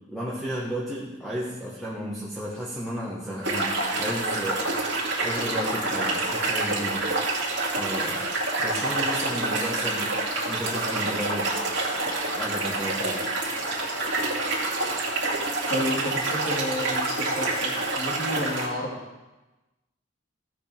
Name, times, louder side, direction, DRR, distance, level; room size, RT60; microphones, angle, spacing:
voice 1, 0.1-4.6 5.2-7.1 7.8-8.2 8.6-10.1 10.5-11.5 11.9-13.2, equal, ahead, -8 dB, 1.4 m, -33 dB
sound 1, 3.4-18.7, right 2 dB, 70° right, 2.3 m, -27 dB
voice 2, 15.7-19.0, equal, 60° left, -5 dB, 2.2 m, -31 dB
15.5 x 5.7 x 3.5 m, 1.1 s
head